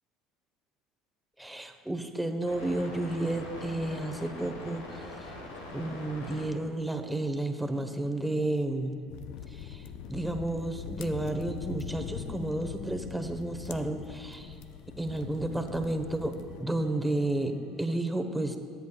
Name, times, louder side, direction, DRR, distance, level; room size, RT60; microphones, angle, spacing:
voice 1, 1.4-5.3 5.7-9.0 9.5-14.6 15.0-16.3 16.6-18.6, right 1 dB, 5° right, 5 dB, 1.2 m, -32 dB
sound 1, 2.5-6.5 7.5-7.7 8.4-10.4 10.8-17.9, left 2 dB, 90° left, 1.6 m, -47 dB
sound 2, 9.1-16.6, left 8 dB, 70° left, 0.5 m, -42 dB
22.5 x 8.3 x 2.4 m, 2.3 s
hypercardioid pair, 75°, 0 cm